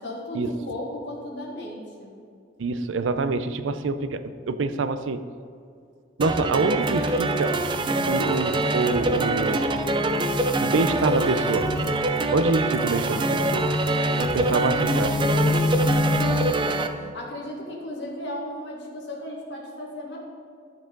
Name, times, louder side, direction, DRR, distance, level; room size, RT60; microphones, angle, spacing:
voice 1, 0.0-2.3 12.6-13.6 14.3-15.0 15.3-15.7 16.0-20.2, left 1 dB, 70° left, -2 dB, 1.6 m, -37 dB
voice 2, 2.6-5.2 6.2-7.6 8.1-9.7 10.6-11.7 12.3-13.6 14.2-15.1, right 3 dB, 90° right, 11 dB, 0.5 m, -26 dB
sound 1, 6.2-16.9, right 2 dB, 25° right, 0.4 m, -25 dB
sound 2, 6.8-16.5, left 2 dB, 50° left, 0.4 m, -29 dB
12.5 x 4.7 x 3.8 m, 2.4 s
head